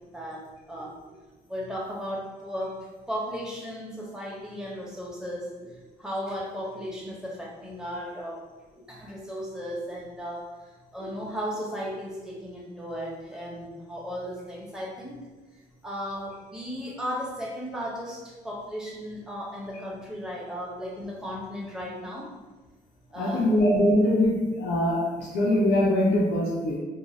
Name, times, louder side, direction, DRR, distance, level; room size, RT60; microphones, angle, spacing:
voice 1, 0.1-1.1 1.5-2.8 3.1-5.7 6.0-8.4 8.7-10.5 10.9-15.2 15.8-22.3 23.1-23.5, equal, 5° right, -4 dB, 1.0 m, -35 dB
voice 2, 23.2-26.8, left 1 dB, 65° left, -5 dB, 0.6 m, -22 dB
2.6 x 2.1 x 3.2 m, 1.3 s
hypercardioid pair, 55°, 19 cm